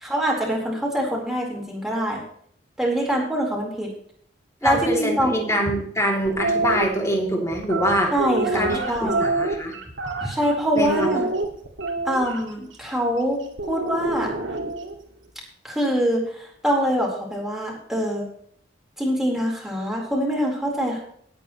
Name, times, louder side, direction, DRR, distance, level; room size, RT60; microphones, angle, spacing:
voice 1, 0.0-2.2 2.8-3.9 4.6-5.4 8.1-9.2 10.2-11.3 12.0-13.4 13.7-14.3 15.6-18.2 19.0-21.0, equal, ahead, -2 dB, 4.2 m, -24 dB
voice 2, 4.6-8.1 8.5-9.7 10.2-10.3 10.7-11.1, equal, 15° left, 0 dB, 3.0 m, -24 dB
sound 1, 6.3-6.8 7.6-10.5 10.9-12.4 13.6-14.9, right 3 dB, 80° right, 2.2 m, -26 dB
18.5 x 8.8 x 3.2 m, 0.63 s
head